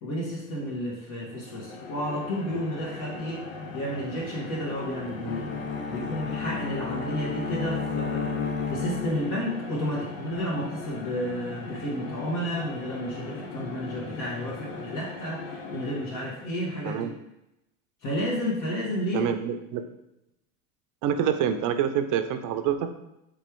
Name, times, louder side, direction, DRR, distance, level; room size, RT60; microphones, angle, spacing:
voice 1, 0.0-3.4 3.7-5.5 5.9-17.1 18.0-19.3, equal, 50° left, -5 dB, 1.3 m, -31 dB
sound 1, 1.2-16.6, left 3 dB, 75° left, 0.9 m, -39 dB
Bowed string instrument, 5.2-9.7, left 5 dB, 30° left, 0.4 m, -32 dB
voice 2, 19.1-19.8 21.0-22.9, right 9 dB, 50° right, 8 dB, 0.6 m, -26 dB
3.6 x 3.1 x 4.6 m, 0.89 s
hypercardioid pair, 90°, 40 cm